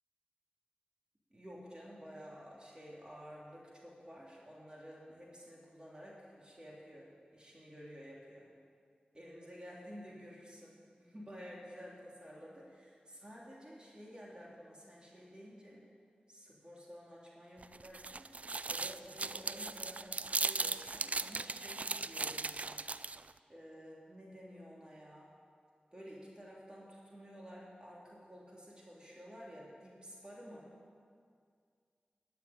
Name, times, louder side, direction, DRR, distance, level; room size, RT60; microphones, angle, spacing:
voice 1, 1.3-8.5 9.1-15.8 16.3-18.4 18.7-22.8 23.5-25.3 25.9-30.7, equal, 30° right, -4 dB, 2.7 m, -52 dB
sound 1, 17.6-23.3, right 3 dB, 50° right, 0.3 m, -38 dB
12.0 x 7.0 x 8.5 m, 2.2 s
cardioid pair, 50°, 3 cm